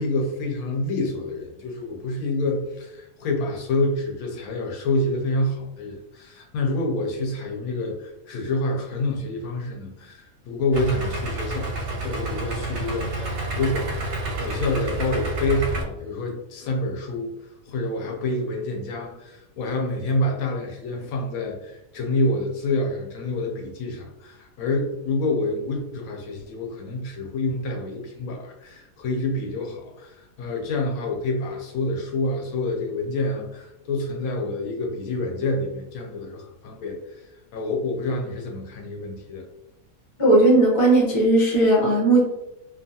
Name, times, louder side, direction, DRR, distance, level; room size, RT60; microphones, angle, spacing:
voice 1, 0.0-17.3 17.7-39.5, left 2 dB, 80° left, 1 dB, 1.0 m, -27 dB
Idling, 10.7-15.8, right 2 dB, 65° right, 0.8 m, -29 dB
voice 2, 40.2-42.2, right 2 dB, 25° left, -4 dB, 0.6 m, -17 dB
2.7 x 2.3 x 2.7 m, 0.90 s
omnidirectional pair, 1.5 m